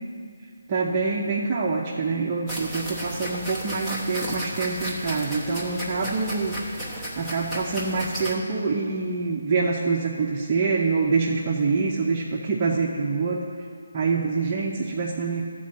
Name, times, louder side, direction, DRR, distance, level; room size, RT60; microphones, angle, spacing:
voice 1, 0.7-6.6 7.2-13.5 13.9-15.4, right 4 dB, 30° right, -4 dB, 0.7 m, -25 dB
sound 1, 2.5-8.3, right 1 dB, 5° left, 1.0 m, -33 dB
12.5 x 4.5 x 7.5 m, 2.3 s
hypercardioid pair, 165°, 0 cm